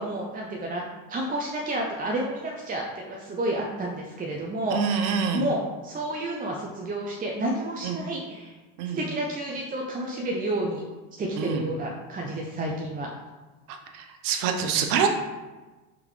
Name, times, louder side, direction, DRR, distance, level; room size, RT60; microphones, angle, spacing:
voice 1, 0.0-8.5 9.0-10.8 11.2-13.1, right 1 dB, 20° right, -1 dB, 0.4 m, -30 dB
voice 2, 4.7-5.5 7.8-8.0 8.8-9.0 11.4-11.6 13.7-15.1, right 6 dB, 85° right, 5 dB, 0.7 m, -26 dB
3.7 x 3.5 x 3.1 m, 1.2 s
supercardioid pair, 95°, 43 cm